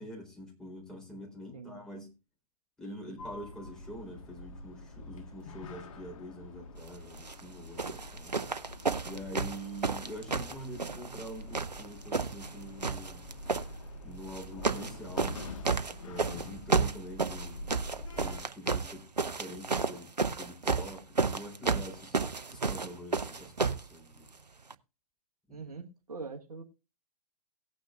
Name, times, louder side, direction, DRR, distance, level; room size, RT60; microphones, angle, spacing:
voice 1, 0.0-2.1 2.8-8.4 9.0-13.3 14.0-15.5 16.0-17.7 18.1-22.2 22.5-24.3 25.5-25.6, equal, 5° left, -2 dB, 3.9 m, -45 dB
Sliding door, 3.2-18.4, left 2 dB, 55° left, 1.6 m, -46 dB
sound 1, 7.1-7.4 7.8-11.3 11.5-12.5 12.8-13.7 14.3-14.9 15.2-23.9 24.7-24.8, right 4 dB, 85° right, 0.7 m, -31 dB
voice 2, 25.5-26.6, right 4 dB, 65° right, 3 dB, 1.4 m, -43 dB
17.5 x 9.2 x 2.5 m, 0.28 s
figure-of-eight pair, 115°, 20 cm